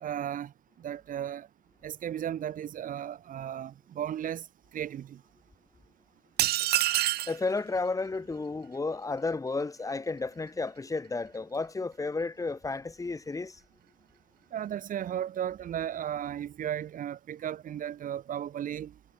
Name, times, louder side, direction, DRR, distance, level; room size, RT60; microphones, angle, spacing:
voice 1, 0.0-0.5 0.8-1.5 1.8-4.5 4.7-5.2 14.5-18.9, right 10 dB, 55° right, 2.0 m, -35 dB
sound 1, 6.4-7.4, right 15 dB, 70° right, 1.2 m, -26 dB
voice 2, 7.3-13.6, left 3 dB, 20° left, 7.4 m, -32 dB
cardioid pair, 110°, 17 cm